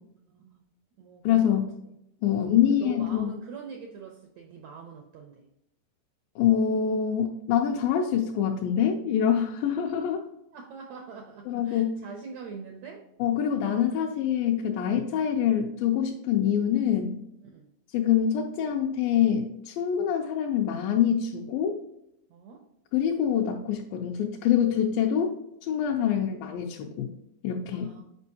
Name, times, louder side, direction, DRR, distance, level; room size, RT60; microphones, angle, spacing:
voice 1, 0.3-0.6 1.0-1.6 2.2-5.4 10.5-13.0 17.4-17.7 22.3-22.6 27.7-28.0, right 5 dB, 90° right, 3 dB, 1.5 m, -44 dB
voice 2, 1.2-1.7 2.2-3.3 6.4-10.3 11.5-12.0 13.2-17.2 17.9-21.8 22.9-25.3 25.6-27.1 27.4-27.9, left 9 dB, 85° left, 0 dB, 2.3 m, -25 dB
6.9 x 5.3 x 2.8 m, 0.81 s
omnidirectional pair, 4.1 m